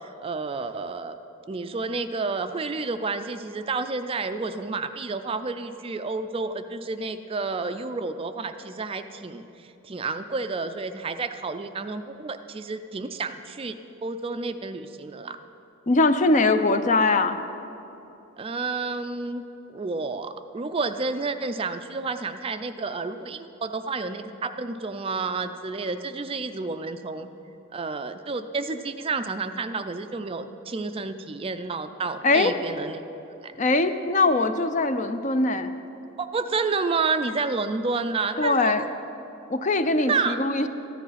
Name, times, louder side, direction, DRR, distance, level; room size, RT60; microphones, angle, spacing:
voice 1, 0.2-1.2 1.5-13.8 14.0-15.4 18.4-19.4 19.7-27.3 27.7-33.0 33.4-33.8 36.2-38.7 39.8-40.4, right 4 dB, 25° right, 9 dB, 0.4 m, -30 dB
voice 2, 15.9-17.4 32.2-32.6 33.6-35.7 38.4-38.8 39.5-40.7, left 3 dB, 35° left, 10 dB, 0.5 m, -21 dB
14.0 x 9.9 x 5.7 m, 3.0 s
head